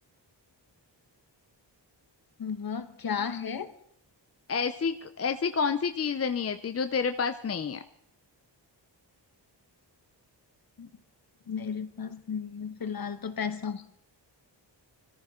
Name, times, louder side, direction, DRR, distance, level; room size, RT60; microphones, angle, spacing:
voice 1, 2.4-3.7 10.8-10.9 11.5-13.8, left 6 dB, 55° left, 11 dB, 1.2 m, -34 dB
voice 2, 4.5-7.8, left 5 dB, 35° left, 9 dB, 0.5 m, -29 dB
24.5 x 14.0 x 3.7 m, 0.70 s
wide cardioid pair, 140°, 44 cm